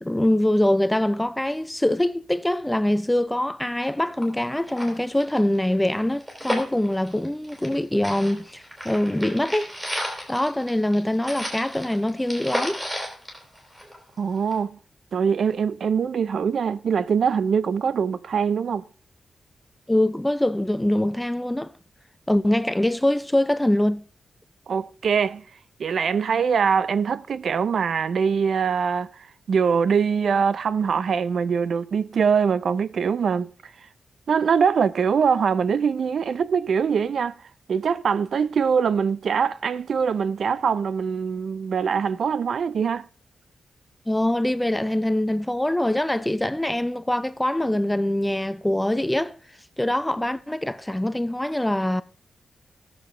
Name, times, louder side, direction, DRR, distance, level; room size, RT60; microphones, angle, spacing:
voice 1, 0.0-9.7 10.3-12.8 19.9-21.7 22.3-24.0 44.1-49.3 49.8-52.0, left 1 dB, 5° left, 0.4 m, -23 dB
sound 1, 3.9-4.0 4.2-4.3 4.6-7.8 8.0-14.1 14.5-14.6, equal, 10° right, 3.5 m, -33 dB
voice 2, 14.2-14.8 15.1-18.8 24.7-25.4 25.8-29.1 29.5-33.5 34.3-37.3 37.7-43.1, right 6 dB, 65° right, 0.4 m, -23 dB
17.5 x 6.8 x 3.7 m
wide cardioid pair, 155°, 0 cm